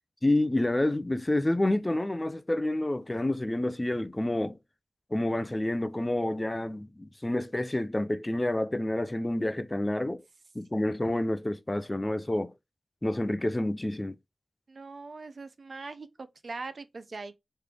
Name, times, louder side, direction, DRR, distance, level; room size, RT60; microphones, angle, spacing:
voice 1, 0.2-4.6 5.1-10.2 10.5-12.5 13.0-14.1, left 1 dB, 20° left, 0.5 m, -28 dB
voice 2, 14.7-17.3, right 3 dB, 60° right, 0.6 m, -41 dB
3.3 x 3.2 x 3.6 m
cardioid pair, 55°, 0 cm